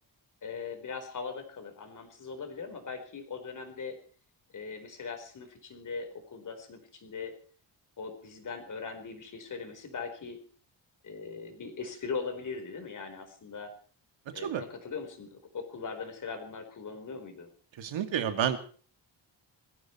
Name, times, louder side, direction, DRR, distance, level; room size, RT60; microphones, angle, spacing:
voice 1, 0.4-4.0 4.5-7.3 8.0-10.4 11.0-13.7 14.3-17.5, left 5 dB, 45° left, 6 dB, 4.4 m, -40 dB
voice 2, 17.8-18.6, right 9 dB, 80° right, 7 dB, 2.5 m, -30 dB
21.0 x 15.5 x 4.5 m, 0.42 s
wide cardioid pair, 175°, 45 cm